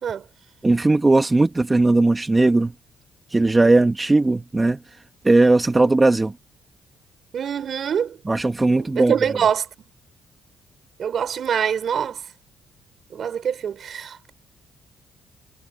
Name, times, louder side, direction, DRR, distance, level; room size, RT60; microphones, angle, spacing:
voice 1, 0.6-2.7 3.3-4.8 5.2-6.3 8.3-9.1, right 2 dB, 20° right, 1.9 m, -18 dB
voice 2, 7.3-8.2 8.6-9.7 11.0-12.2 13.1-14.3, right 8 dB, 55° right, 5.2 m, -25 dB
cardioid pair, 90°, 0 cm